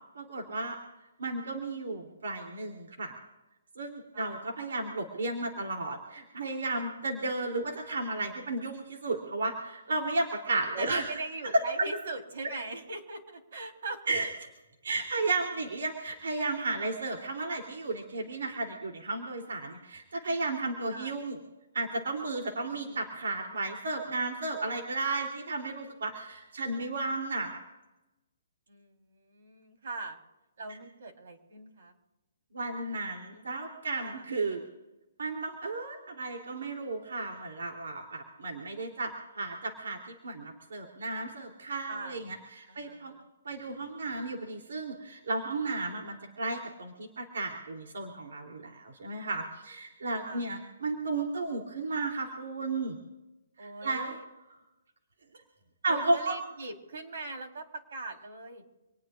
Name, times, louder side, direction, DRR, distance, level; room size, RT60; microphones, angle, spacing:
voice 1, 0.1-0.8 1.2-3.1 3.8-11.0 11.4-11.5 14.1-14.3 14.8-21.4 21.7-27.6 32.5-34.7 35.2-40.0 40.2-43.2 43.4-53.0 53.6-54.1 55.8-56.4, right 3 dB, 80° right, 1 dB, 3.1 m, -33 dB
voice 2, 10.8-14.3 20.9-21.1 22.7-23.0 23.4-23.7 28.7-30.2 30.6-31.9 32.9-33.0 33.3-33.5 34.0-34.3 41.9-42.2 42.7-43.3 50.2-50.5 53.6-54.2 55.9-58.6, right 2 dB, 60° right, 3 dB, 3.9 m, -41 dB
27.0 x 19.5 x 2.5 m, 1.0 s
hypercardioid pair, 165°, 0 cm